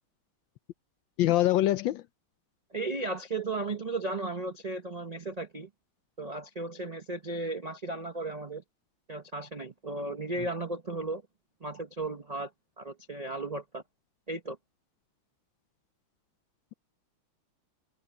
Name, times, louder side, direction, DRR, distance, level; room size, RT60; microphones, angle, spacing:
voice 1, 1.2-2.0, left 14 dB, 70° left, 1.2 m, -24 dB
voice 2, 2.7-5.7 6.2-8.6 9.1-11.2 11.6-12.5 12.8-13.8 14.3-14.6, right 2 dB, 45° right, 0.5 m, -35 dB
omnidirectional pair, 2.4 m